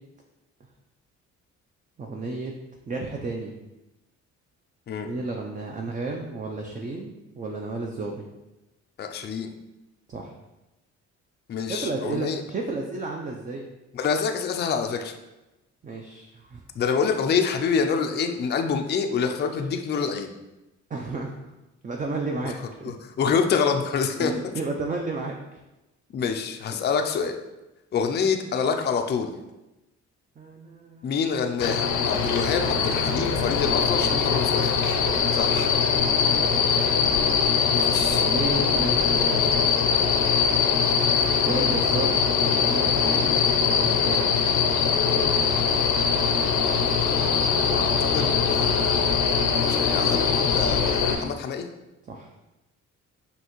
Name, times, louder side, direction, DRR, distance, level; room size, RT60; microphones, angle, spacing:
voice 1, 2.0-2.5 2.9-3.5 5.0-8.3 10.1-10.3 11.7-13.7 15.8-16.6 20.9-21.3 21.8-22.9 24.2-25.6 26.7-26.9 30.4-31.2 34.0-34.4 35.9-36.7 38.1-39.6 41.5-44.3 52.1-52.3, right 3 dB, 25° right, 1 dB, 0.5 m, -32 dB
voice 2, 9.0-9.5 11.5-12.4 13.9-15.2 16.8-20.3 22.4-22.5 22.8-24.5 26.1-27.4 27.9-29.3 31.0-34.7 35.3-35.7 37.7-38.2 47.7-49.1 49.5-51.7, left 6 dB, 35° left, 5 dB, 0.4 m, -27 dB
sound 1, 31.6-51.1, left 6 dB, 80° left, 0.6 m, -22 dB
5.4 x 2.8 x 3.0 m, 1.0 s
cardioid pair, 90°, 30 cm